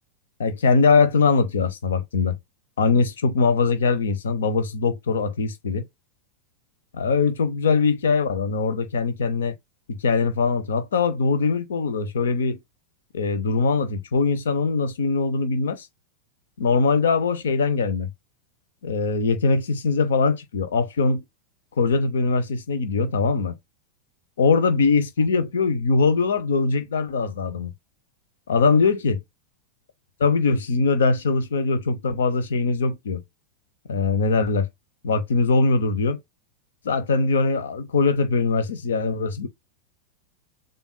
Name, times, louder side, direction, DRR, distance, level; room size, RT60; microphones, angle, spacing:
voice 1, 0.4-2.4 2.8-5.9 6.9-9.5 9.9-12.6 13.1-15.9 16.6-18.1 18.8-21.2 21.8-23.6 24.4-27.7 28.5-29.2 30.2-33.2 33.9-34.7 35.0-36.2 36.8-39.5, left 4 dB, 65° left, 0.8 m, -22 dB
6.9 x 2.5 x 2.2 m
figure-of-eight pair, 90°, 0 cm